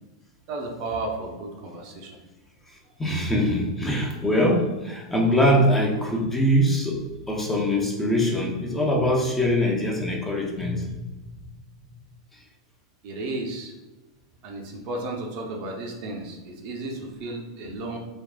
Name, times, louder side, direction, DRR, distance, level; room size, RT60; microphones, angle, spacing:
voice 1, 0.5-2.2 13.0-13.7 14.4-18.0, right 2 dB, 50° right, 0 dB, 0.6 m, -33 dB
voice 2, 2.7-7.0 7.3-11.0, equal, 10° left, -2 dB, 0.6 m, -23 dB
3.5 x 2.3 x 2.2 m, 1.1 s
hypercardioid pair, 100°, 2 cm